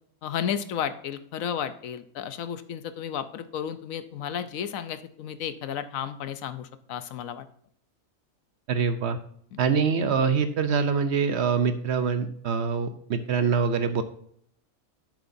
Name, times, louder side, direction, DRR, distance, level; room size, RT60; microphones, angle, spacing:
voice 1, 0.2-7.5 9.5-9.6, left 8 dB, 80° left, 11 dB, 1.1 m, -33 dB
voice 2, 8.7-9.2 9.6-14.0, right 5 dB, 60° right, 10 dB, 0.9 m, -24 dB
10.5 x 8.0 x 2.6 m, 0.64 s
omnidirectional pair, 1.4 m